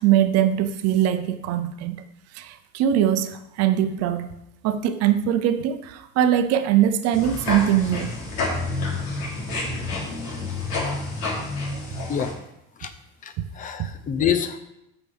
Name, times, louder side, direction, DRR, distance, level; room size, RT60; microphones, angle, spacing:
voice 1, 0.0-2.0 2.3-4.3 4.6-8.1 13.4-13.5 13.8-13.9, right 10 dB, 55° right, 9 dB, 0.7 m, -22 dB
sound 1, 7.1-12.3, left 3 dB, 70° left, 3.2 m, -29 dB
voice 2, 13.2-14.6, left 8 dB, 25° left, 10 dB, 0.6 m, -26 dB
14.0 x 6.0 x 3.5 m, 0.84 s
cardioid pair, 170°, 31 cm